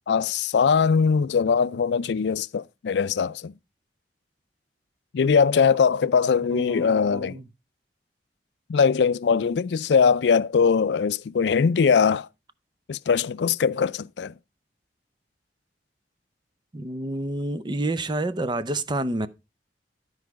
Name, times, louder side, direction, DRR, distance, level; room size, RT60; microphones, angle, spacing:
voice 1, 0.1-3.5 5.1-7.4 8.7-12.3 12.9-14.3, left 6 dB, 75° left, 0.4 m, -21 dB
voice 2, 6.5-7.5 16.7-19.3, right 2 dB, 25° right, 0.6 m, -29 dB
12.5 x 4.8 x 4.6 m
head